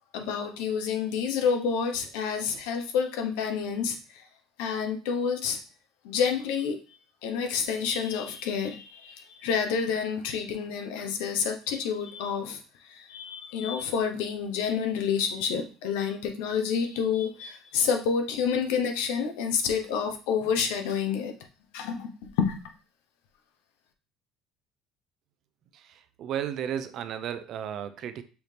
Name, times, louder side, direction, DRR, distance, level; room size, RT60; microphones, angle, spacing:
voice 1, 0.1-4.3 4.6-5.6 6.0-6.8 7.2-21.3 21.7-22.1 22.4-22.5, left 6 dB, 90° left, 5 dB, 0.9 m, -29 dB
voice 2, 25.7-28.2, right 9 dB, 50° right, 11 dB, 0.5 m, -34 dB
5.6 x 2.8 x 3.3 m, 0.36 s
cardioid pair, 135°, 0 cm